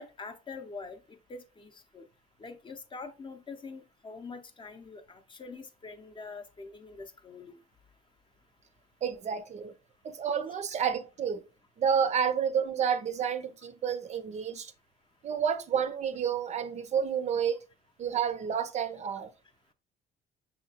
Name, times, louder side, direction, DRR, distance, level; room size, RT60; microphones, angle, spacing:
voice 1, 0.0-2.0 2.4-7.6, left 4 dB, 30° left, 0.6 m, -44 dB
voice 2, 9.0-9.7 10.0-11.4 11.8-14.7 15.2-17.6 18.0-19.3, right 7 dB, 45° right, 0.5 m, -30 dB
5.7 x 2.8 x 2.7 m
cardioid pair, 110°, 17 cm